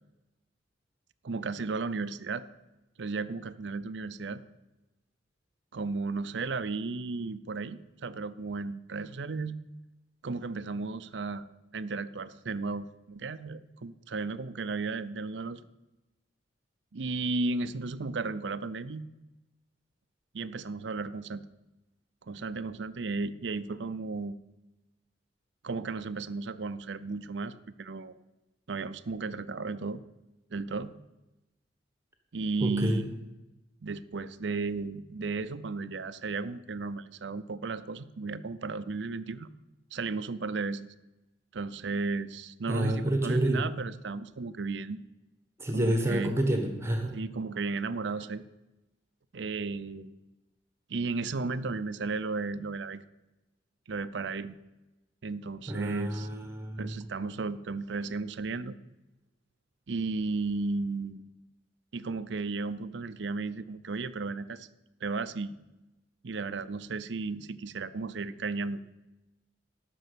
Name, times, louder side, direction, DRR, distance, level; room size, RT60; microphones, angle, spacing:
voice 1, 1.2-2.4 3.0-4.4 5.7-9.6 10.2-11.5 11.7-15.6 16.9-19.1 20.3-21.4 22.2-24.4 25.6-27.5 27.8-28.1 28.7-30.0 30.5-30.9 32.3-33.0 33.8-39.5 39.9-40.9 41.5-45.0 45.7-46.3 47.1-48.4 49.3-50.1 50.9-53.0 53.9-54.6 55.2-56.3 56.8-58.8 59.9-61.2 61.9-64.7 65.0-65.6 66.2-68.8, right 3 dB, 70° right, 13 dB, 0.6 m, -34 dB
voice 2, 32.6-33.0 42.7-43.6 45.6-47.1 55.7-56.9, right 1 dB, 15° right, 4 dB, 1.4 m, -28 dB
12.0 x 6.2 x 8.2 m, 0.99 s
head